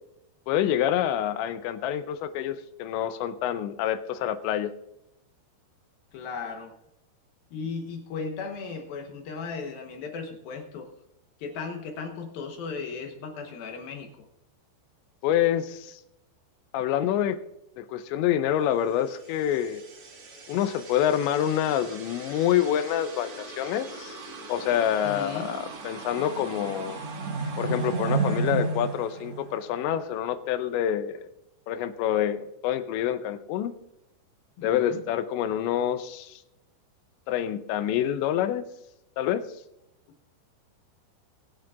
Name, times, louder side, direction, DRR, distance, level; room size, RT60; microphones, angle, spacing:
voice 1, 0.5-4.7 15.2-16.0 16.7-17.4 17.8-19.8 20.5-24.2 24.5-27.0 27.6-31.3 31.7-33.7 34.6-36.4 37.3-38.6 39.2-39.4, left 10 dB, 90° left, 11 dB, 3.0 m, -27 dB
voice 2, 6.1-6.7 7.5-10.9 11.4-14.3 25.0-25.5 34.6-35.0, left 5 dB, 70° left, 4 dB, 2.5 m, -36 dB
sound 1, 19.3-30.0, right 3 dB, 70° right, 1.3 m, -34 dB
22.5 x 9.4 x 2.4 m, 0.83 s
omnidirectional pair, 5.2 m